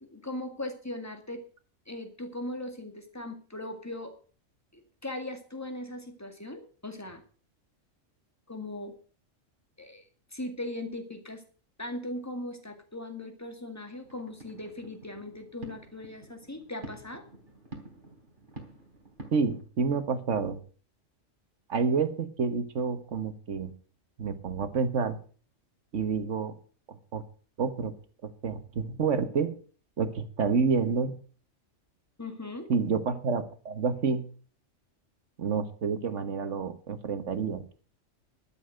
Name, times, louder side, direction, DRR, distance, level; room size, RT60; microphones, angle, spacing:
voice 1, 0.0-1.4 1.9-4.1 4.7-7.2 8.5-8.9 9.8-10.0 10.3-11.4 11.8-17.2 32.2-32.7, left 1 dB, 10° left, 6 dB, 2.0 m, -39 dB
sound 1, 14.0-19.6, right 2 dB, 40° right, 3.2 m, -48 dB
voice 2, 19.3-20.6 21.7-23.7 24.2-25.2 25.9-26.5 26.9-27.2 27.6-27.9 28.2-29.5 30.0-31.1 32.7-34.2 35.4-37.7, right 5 dB, 65° right, 10 dB, 1.6 m, -29 dB
12.0 x 7.4 x 7.7 m, 0.40 s
omnidirectional pair, 1.4 m